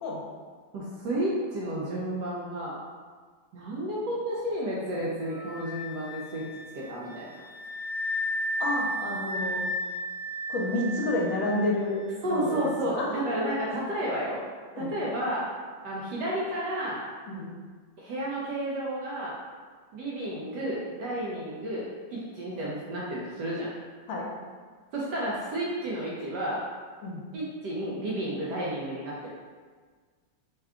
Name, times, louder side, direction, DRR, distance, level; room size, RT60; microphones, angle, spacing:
voice 1, 0.7-2.8 3.5-6.5 6.7-7.4 12.2-14.4 14.8-15.5 15.8-17.0 18.0-19.4 19.9-23.7 24.9-26.7 27.3-29.3, right 1 dB, 70° right, -5 dB, 1.0 m, -31 dB
Wind instrument woodwind instrument, 5.3-12.7, equal, 35° right, 1.1 m, -34 dB
voice 2, 8.6-9.6 10.5-13.8 14.7-14.9 17.3-17.5 24.1-24.3 27.0-27.2, left 2 dB, 75° left, -2 dB, 1.3 m, -30 dB
3.6 x 2.2 x 3.5 m, 1.6 s
omnidirectional pair, 2.2 m